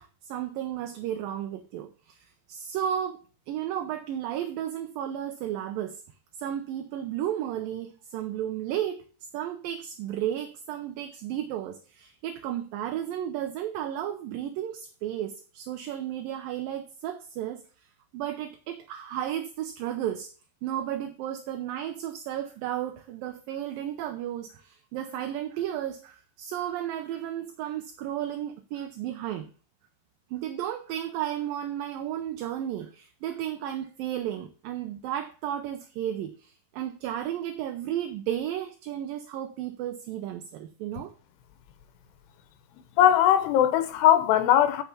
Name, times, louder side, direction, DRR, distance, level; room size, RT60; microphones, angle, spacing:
voice 1, 0.0-6.0 6.4-9.0 9.3-17.6 18.1-20.3 20.6-29.5 30.3-41.1, right 11 dB, 75° right, 2.3 m, -33 dB
voice 2, 43.0-44.8, left 11 dB, 85° left, 3.1 m, -20 dB
8.6 x 6.9 x 7.1 m
omnidirectional pair, 4.6 m